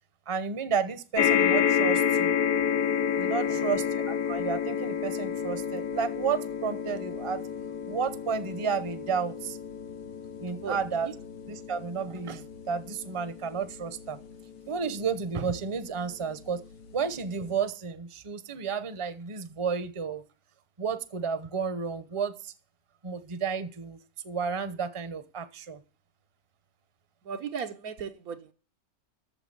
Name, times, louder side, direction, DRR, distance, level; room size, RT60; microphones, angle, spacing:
voice 1, 0.3-2.3 3.2-7.4 7.9-9.6 10.4-11.1 11.5-14.2 14.7-16.6 16.9-20.2 20.8-22.5 23.0-24.0 24.2-25.8, right 6 dB, 25° right, 12 dB, 0.8 m, -32 dB
sound 1, 1.2-15.7 16.5-16.6 16.8-16.9, left 8 dB, 90° left, 1.3 m, -30 dB
voice 2, 3.3-3.8 10.6-10.8 27.2-28.5, right 6 dB, 75° right, 7 dB, 1.5 m, -37 dB
8.7 x 7.1 x 8.6 m, 0.38 s
omnidirectional pair, 1.6 m